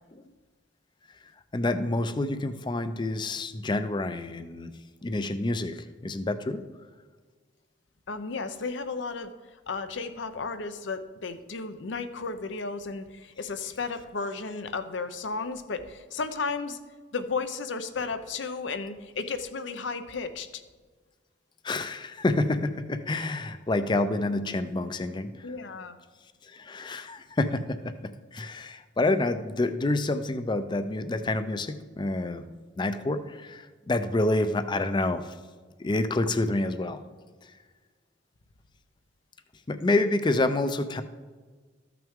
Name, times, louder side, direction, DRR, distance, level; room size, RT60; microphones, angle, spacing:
voice 1, 1.5-4.7 5.0-6.6 21.6-25.5 26.4-35.3 35.8-37.0 39.7-41.0, left 2 dB, 25° left, 10 dB, 0.4 m, -28 dB
voice 2, 8.1-9.3 9.7-16.8 17.1-20.6 25.4-26.0, left 4 dB, 70° left, 10 dB, 0.7 m, -34 dB
14.0 x 5.9 x 3.6 m, 1.4 s
head